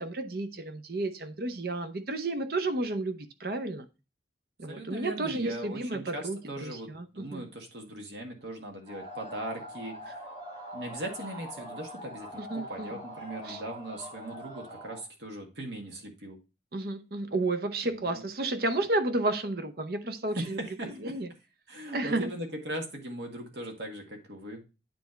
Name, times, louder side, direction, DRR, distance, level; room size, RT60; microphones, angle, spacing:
voice 1, 0.0-3.9 4.6-7.5 12.4-13.0 13.4-13.6 16.7-21.3 21.9-22.3, right 2 dB, 55° right, 0.7 m, -32 dB
voice 2, 4.7-10.3 10.7-16.4 17.8-18.2 20.4-21.1 21.7-24.7, right 1 dB, 70° right, 1.7 m, -39 dB
sound 1, 8.9-15.0, equal, 25° right, 1.7 m, -43 dB
9.4 x 3.4 x 4.4 m
head